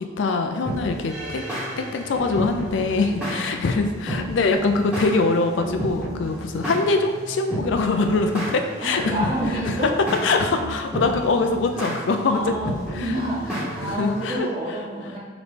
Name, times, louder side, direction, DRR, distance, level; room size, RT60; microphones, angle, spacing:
voice 1, 0.0-1.5 1.8-9.3 9.7-9.9 10.2-13.2 13.8-14.5, left 3 dB, 90° left, 6 dB, 0.4 m, -23 dB
sound 1, 0.6-14.4, equal, 5° right, 1.1 m, -32 dB
voice 2, 3.2-3.6 6.3-6.4 7.5-7.7 8.8-9.9 11.7-11.9 12.3-12.7 13.0-15.2, right 1 dB, 30° right, -8 dB, 1.4 m, -29 dB
5.0 x 3.1 x 3.3 m, 1.3 s
head